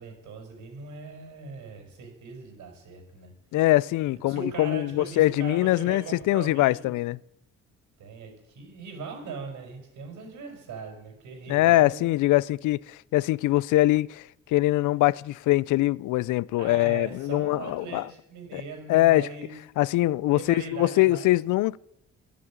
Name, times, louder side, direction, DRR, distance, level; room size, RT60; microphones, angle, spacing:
voice 1, 0.0-3.3 4.3-6.9 8.0-12.0 16.6-19.5 20.3-21.4, right 5 dB, 80° right, 5.5 m, -40 dB
voice 2, 3.5-7.2 11.5-18.1 18.5-18.6 18.9-19.3 19.8-21.8, left 17 dB, 80° left, 0.5 m, -23 dB
13.0 x 11.0 x 8.7 m
cardioid pair, 90°, 30 cm